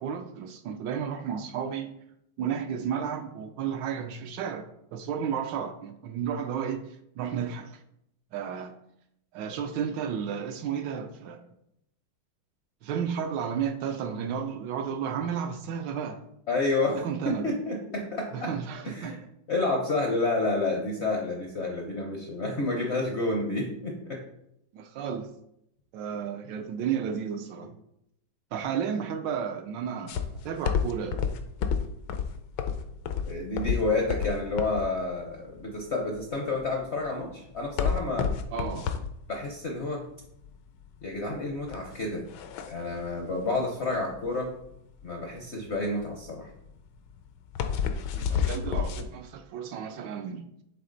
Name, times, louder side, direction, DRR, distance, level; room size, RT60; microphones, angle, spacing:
voice 1, 0.0-1.9 2.4-6.9 7.2-7.8 8.3-8.7 9.3-11.4 12.8-16.2 16.9-17.5 18.3-19.2 24.7-25.3 25.9-27.7 28.5-31.2 38.5-39.0 48.1-50.5, right 7 dB, 75° right, 1.1 m, -32 dB
voice 2, 16.5-17.0 17.2-18.5 18.8-19.2 19.5-24.2 33.3-38.3 39.3-40.1 41.0-42.3 42.7-44.5 45.0-46.5, left 2 dB, 55° left, 0.7 m, -29 dB
sound 1, 30.1-49.0, left 7 dB, 70° left, 1.1 m, -31 dB
7.5 x 3.5 x 3.9 m
omnidirectional pair, 2.1 m